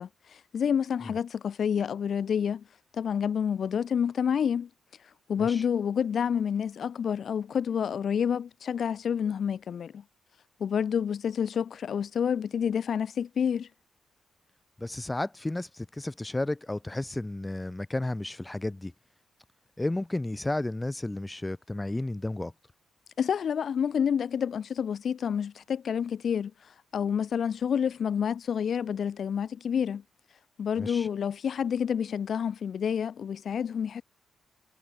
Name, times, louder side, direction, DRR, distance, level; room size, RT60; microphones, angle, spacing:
voice 1, 0.0-2.6 2.9-4.7 5.0-10.0 10.6-13.7 23.2-30.0 30.6-34.0, left 7 dB, 60° left, 2.0 m, -29 dB
voice 2, 14.8-18.9 19.8-22.5 30.8-31.1, left 2 dB, 15° left, 4.2 m, -32 dB
cardioid pair, 90°, 0 cm